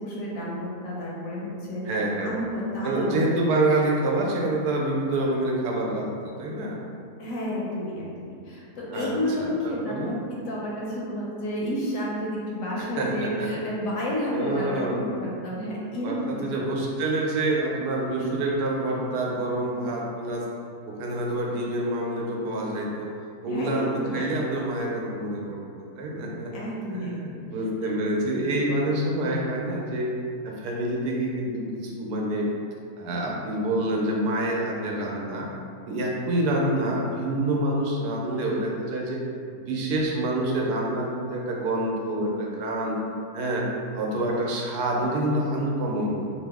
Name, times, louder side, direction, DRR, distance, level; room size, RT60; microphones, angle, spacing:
voice 1, 0.0-3.2 7.2-16.6 23.5-24.2 26.5-27.4, equal, 70° left, -4 dB, 0.9 m, -31 dB
voice 2, 1.9-2.3 2.8-6.8 8.9-9.1 9.4-10.1 13.0-13.5 14.3-15.0 16.0-20.4 20.9-23.1 23.4-26.5 26.9-30.1 30.4-32.5 33.0-35.5 35.9-39.2 39.5-43.0 43.3-43.7 43.9-46.2, right 1 dB, 90° right, -2 dB, 1.2 m, -27 dB
3.0 x 2.0 x 3.4 m, 2.4 s
omnidirectional pair, 1.6 m